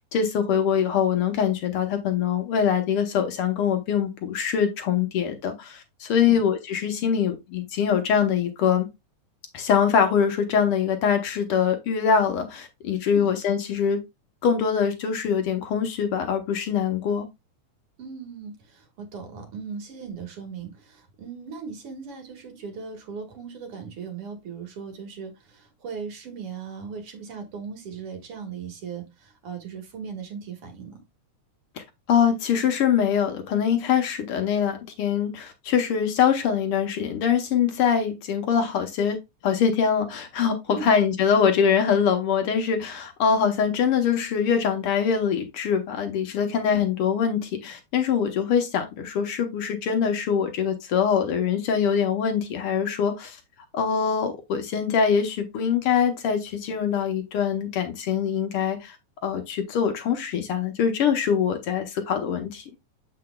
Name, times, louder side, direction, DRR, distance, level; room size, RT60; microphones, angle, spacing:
voice 1, 0.0-8.9 9.5-14.0 14.4-17.3 31.8-39.2 39.4-53.4 53.7-59.0 59.2-62.6, left 7 dB, 65° left, 1.5 m, -23 dB
voice 2, 18.0-31.0 40.7-40.9 46.7-46.8, right 6 dB, 55° right, 2.2 m, -38 dB
7.7 x 5.8 x 2.2 m
omnidirectional pair, 3.5 m